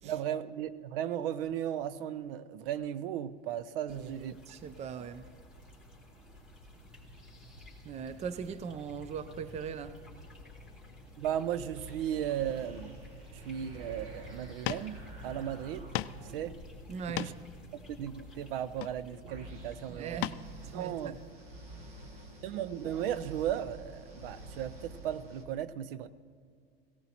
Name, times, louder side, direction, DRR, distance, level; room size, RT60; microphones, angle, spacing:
voice 1, 0.0-4.4 11.2-13.0 13.3-15.9 16.3-16.5 17.2-17.3 17.9-20.3 20.7-21.2 22.4-26.1, right 10 dB, 65° right, 0.6 m, -36 dB
sound 1, 3.9-22.0, left 1 dB, 5° right, 3.2 m, -53 dB
voice 2, 3.9-5.3 7.8-10.0 16.9-17.4 19.9-21.1, right 6 dB, 20° right, 0.5 m, -40 dB
sound 2, 11.7-25.4, right 1 dB, 45° right, 2.2 m, -49 dB
sound 3, 14.4-14.5 14.6-14.9 15.3-15.4 15.9-16.2 16.9-17.5 18.7-19.2 20.2-20.5 20.9-21.0, left 15 dB, 55° left, 0.5 m, -36 dB
18.0 x 17.0 x 2.9 m
hypercardioid pair, 90°, 30 cm